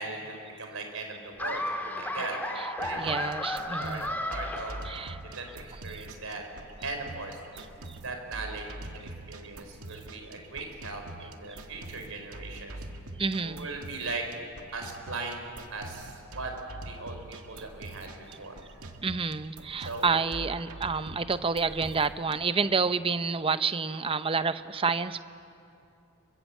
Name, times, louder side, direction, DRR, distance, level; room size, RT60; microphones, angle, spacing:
voice 1, 0.0-3.2 3.8-5.1 5.4-6.4 6.8-7.4 8.0-12.8 13.4-14.3 14.7-16.5 16.8-18.7 19.8-20.1 20.9-21.0, right 3 dB, 70° right, 4 dB, 4.4 m, -39 dB
Laughter, 1.4-5.4, left 1 dB, 10° left, 2.0 m, -34 dB
sound 1, 2.8-22.3, right 2 dB, 85° right, 1.9 m, -44 dB
voice 2, 2.9-4.1 4.8-5.2 5.9-6.1 7.9-8.0 13.2-13.7 19.0-25.2, right 4 dB, 25° right, 12 dB, 0.7 m, -29 dB
28.5 x 23.5 x 8.3 m, 2.7 s
head